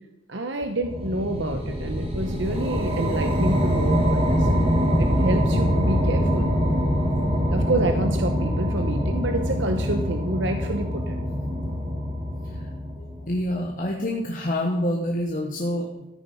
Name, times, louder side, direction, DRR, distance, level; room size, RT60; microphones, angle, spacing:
voice 1, 0.3-4.5 5.0-6.5 7.5-11.2, right 1 dB, 70° right, 6 dB, 0.9 m, -28 dB
sound 1, 0.8-13.3, equal, 30° right, 2.2 m, -24 dB
voice 2, 12.4-16.1, left 1 dB, 45° left, -1 dB, 1.4 m, -28 dB
13.5 x 9.4 x 5.5 m, 1.0 s
head